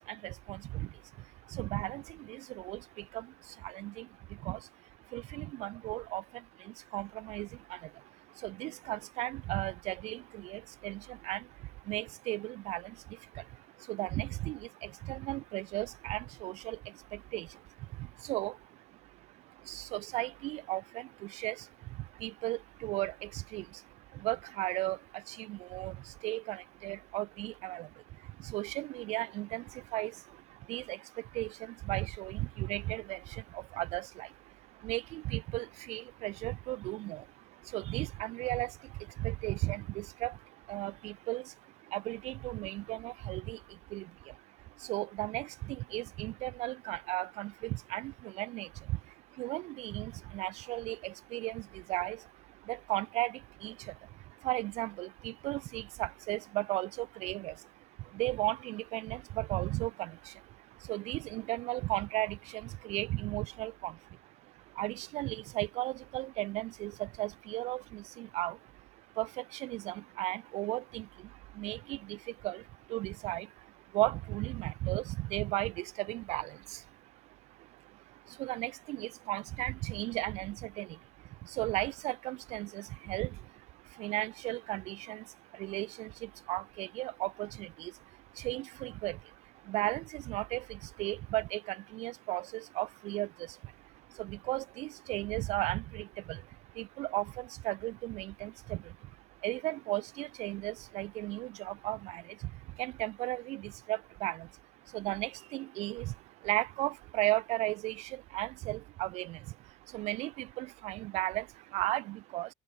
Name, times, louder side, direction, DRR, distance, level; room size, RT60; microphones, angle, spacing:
voice 1, 0.1-0.9 1.5-2.8 3.1-3.3 3.6-4.1 4.4-4.6 5.1-6.2 6.7-7.8 8.4-11.4 11.9-12.9 13.9-16.8 17.3-17.5 18.2-18.6 19.7-21.6 22.2-23.7 24.2-26.0 26.2-27.9 28.4-29.6 29.9-30.1 30.7-31.0 31.3-34.3 34.8-37.2 37.7-38.7 39.2-40.3 40.7-41.4 41.9-43.6 43.9-44.1 44.9-49.0 49.4-52.2 52.7-53.7 54.4-57.5 58.1-60.3 60.9-63.9 64.8-68.6 69.2-71.1 71.6-72.2 72.4-72.6 72.9-73.5 73.9-76.8 78.4-80.9 81.5-83.3 84.0-85.2 85.6-87.9 88.4-89.2 89.7-93.3 94.2-96.4 96.8-98.8 99.4-102.2 102.8-104.5 104.9-106.1 106.4-109.4 109.9-111.5 111.7-112.5, right 19 dB, 45° right, 1.2 m, -35 dB
cardioid pair, 180°, 15 cm